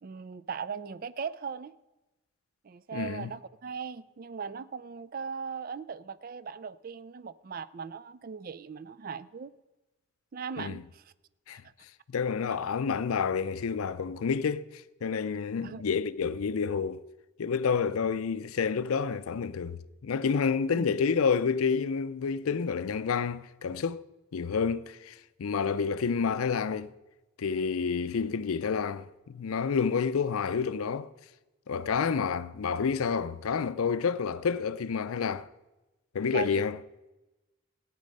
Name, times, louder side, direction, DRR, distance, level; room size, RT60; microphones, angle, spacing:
voice 1, 0.0-1.7 2.6-9.5 10.3-11.1 12.5-12.6 15.6-15.8 20.7-21.0 36.3-36.7, right 6 dB, 40° right, 0.4 m, -39 dB
voice 2, 2.9-3.3 10.6-10.8 11.5-11.6 12.1-17.0 17.4-24.0 24.3-26.9 27.4-31.1 31.7-35.5 36.1-36.8, left 6 dB, 85° left, 0.5 m, -29 dB
15.0 x 9.2 x 5.3 m
head